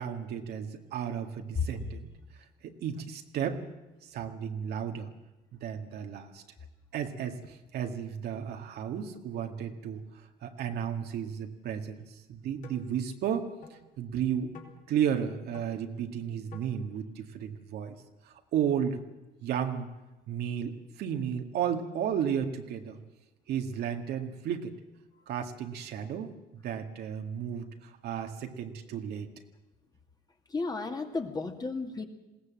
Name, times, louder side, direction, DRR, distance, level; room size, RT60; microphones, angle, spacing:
voice 1, 0.0-2.1 2.6-3.7 4.0-5.1 5.5-6.4 6.9-13.5 14.0-14.5 14.9-18.0 18.2-19.0 19.4-19.9 20.3-23.0 23.5-24.7 25.3-29.3, right 8 dB, 70° right, 5 dB, 1.9 m, -33 dB
sound 1, 12.6-12.8 13.6-13.7 14.5-14.8 15.5-15.7 16.5-16.7, left 5 dB, 50° left, 4.1 m, -48 dB
voice 2, 30.5-32.1, left 3 dB, 25° left, 4 dB, 2.3 m, -33 dB
21.0 x 17.0 x 7.6 m, 1.1 s
cardioid pair, 110°, 17 cm